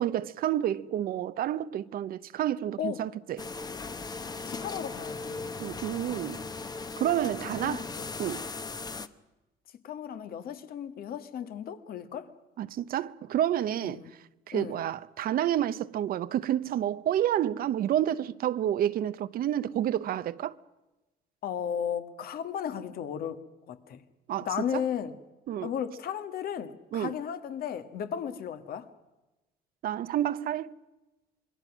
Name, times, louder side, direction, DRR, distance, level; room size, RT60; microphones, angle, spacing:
voice 1, 0.0-3.5 5.6-6.5 7.0-7.9 8.2-8.4 12.6-14.0 14.5-20.6 24.3-24.5 24.7-24.8 25.5-25.7 26.9-27.1 29.8-30.7, right 11 dB, 60° right, 0.7 m, -29 dB
sound 1, 3.4-9.1, left 4 dB, 25° left, 1.1 m, -38 dB
voice 2, 4.5-5.5 7.6-8.1 9.8-12.3 13.8-14.1 14.5-14.8 21.4-24.0 24.4-25.2 25.6-28.9, left 8 dB, 60° left, 1.7 m, -35 dB
27.0 x 22.0 x 6.1 m
cardioid pair, 110°, 17 cm